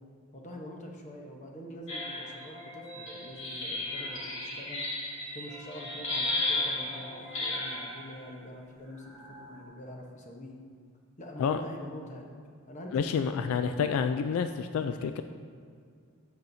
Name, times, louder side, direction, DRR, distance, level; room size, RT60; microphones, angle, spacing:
voice 1, 0.3-4.8 5.3-10.6 11.2-12.3 12.7-13.7, equal, 35° left, 1 dB, 0.9 m, -45 dB
sound 1, 1.9-8.1 9.0-9.6, left 2 dB, 60° left, 1.8 m, -35 dB
voice 2, 12.9-15.2, left 6 dB, 75° left, 9 dB, 0.3 m, -29 dB
10.0 x 7.0 x 2.7 m, 2.2 s
head